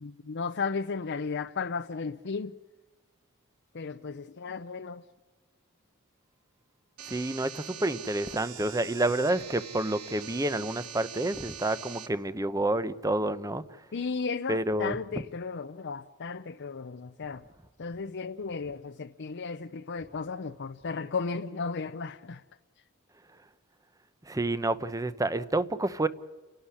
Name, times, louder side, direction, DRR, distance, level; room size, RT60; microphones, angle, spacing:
voice 1, 0.0-2.5 3.7-5.0 13.9-17.4 17.8-22.4, left 4 dB, 55° left, 0.6 m, -34 dB
voice 2, 7.0-13.8 14.5-15.2 24.2-26.1, right 1 dB, 15° right, 0.8 m, -29 dB
sound 1, 7.0-12.1, right 8 dB, 85° right, 1.9 m, -43 dB
30.0 x 11.5 x 9.9 m
head